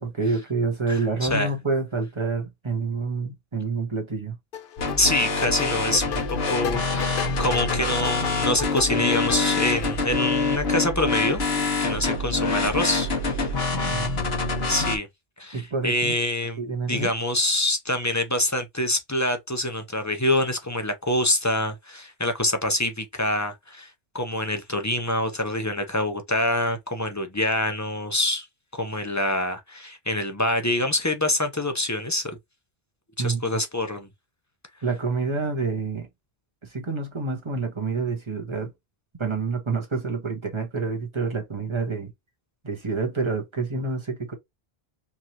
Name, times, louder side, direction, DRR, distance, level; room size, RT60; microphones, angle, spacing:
voice 1, 0.0-4.3 13.7-14.1 15.5-16.2 16.6-17.1 33.2-33.4 34.8-36.1 36.6-38.7 39.2-42.1 42.6-44.3, right 4 dB, 30° right, 1.2 m, -28 dB
voice 2, 0.9-1.5 5.0-11.4 11.8-13.7 14.7-15.1 15.4-16.6 16.9-23.9 24.1-28.5 28.7-32.4 33.2-34.1, left 1 dB, 20° left, 0.7 m, -26 dB
sound 1, 4.5-10.2, left 9 dB, 65° left, 0.7 m, -34 dB
sound 2, 4.8-15.0, left 3 dB, 80° left, 1.4 m, -26 dB
4.7 x 2.7 x 2.9 m
omnidirectional pair, 1.0 m